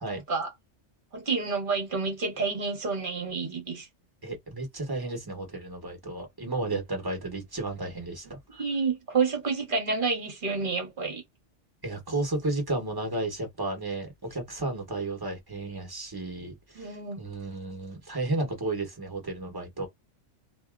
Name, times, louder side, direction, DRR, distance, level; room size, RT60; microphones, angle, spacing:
voice 1, 0.1-0.5 1.1-3.9 8.5-11.2 16.7-17.2, right 4 dB, 45° right, 1.1 m, -29 dB
voice 2, 4.2-8.6 11.8-19.9, right 2 dB, 20° right, 1.0 m, -33 dB
2.7 x 2.4 x 2.3 m
omnidirectional pair, 1.2 m